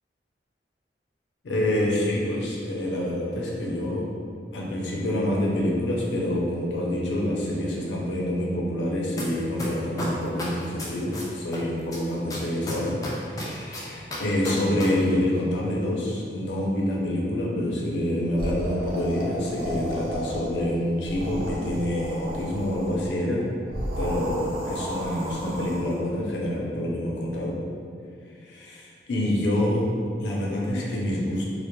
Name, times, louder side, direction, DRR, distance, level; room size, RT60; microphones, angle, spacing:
voice 1, 1.4-4.1 4.5-13.0 13.3-23.5 24.0-27.6 28.4-29.9 30.2-31.4, left 1 dB, 90° left, -3 dB, 0.5 m, -27 dB
sound 1, 9.2-9.3 9.6-11.6 11.9-14.8 15.1-15.2, left 1 dB, 20° left, 0.3 m, -33 dB
sound 2, 18.4-20.7 21.0-23.1 23.7-26.0, equal, 55° right, 0.4 m, -33 dB
2.2 x 2.0 x 2.9 m, 2.3 s
head